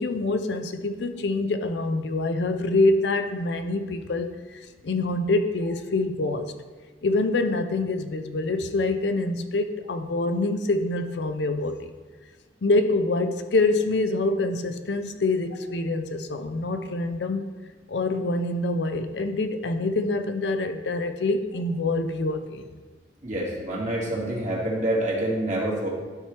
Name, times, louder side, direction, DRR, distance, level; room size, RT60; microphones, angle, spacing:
voice 1, 0.0-6.5 7.0-11.8 12.6-17.5 17.9-22.7, left 2 dB, 70° left, 8 dB, 0.5 m, -25 dB
voice 2, 23.2-25.9, right 1 dB, 40° right, -4 dB, 1.8 m, -27 dB
12.5 x 4.6 x 3.3 m, 1.3 s
head